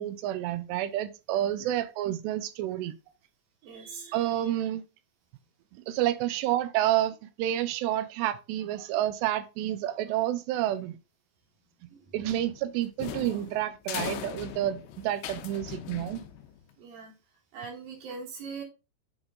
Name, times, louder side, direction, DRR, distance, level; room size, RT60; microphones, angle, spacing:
voice 1, 0.0-2.9 4.1-4.8 5.7-11.0 12.1-16.2, right 13 dB, 85° right, 2.7 m, -29 dB
voice 2, 3.6-4.5 11.9-12.0 16.8-17.1 17.5-18.6, right 5 dB, 65° right, 2.9 m, -42 dB
sound 1, 12.2-16.7, left 10 dB, 85° left, 2.8 m, -39 dB
7.9 x 3.9 x 3.7 m
omnidirectional pair, 5.0 m